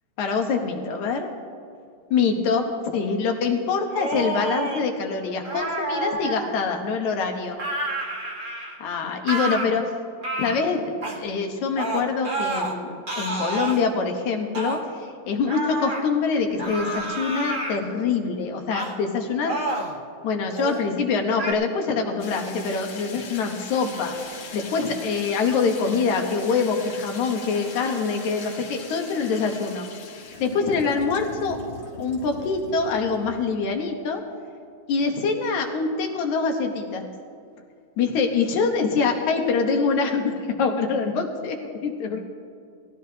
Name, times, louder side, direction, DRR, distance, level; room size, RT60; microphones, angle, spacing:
voice 1, 0.2-1.3 2.1-7.6 8.8-9.9 10.4-10.8 11.2-19.6 20.2-24.1 24.5-29.9 30.4-31.6 32.0-34.2 34.9-37.1 38.0-42.2, left 5 dB, 75° left, 3 dB, 2.3 m, -25 dB
sound 1, 3.9-4.8 5.4-6.5 7.6-8.8 9.3-9.7 10.2-10.6 11.0-11.2 11.8-12.7 13.1-13.8 14.5-14.8 15.5-16.0 16.6-17.8 18.7-18.9 19.4-19.9 20.5-20.8 21.4-21.5, right 2 dB, 70° right, 0.4 m, -29 dB
sound 2, 22.2-33.6, left 4 dB, 50° left, 1.7 m, -40 dB
19.0 x 14.5 x 2.8 m, 2.3 s
omnidirectional pair, 3.4 m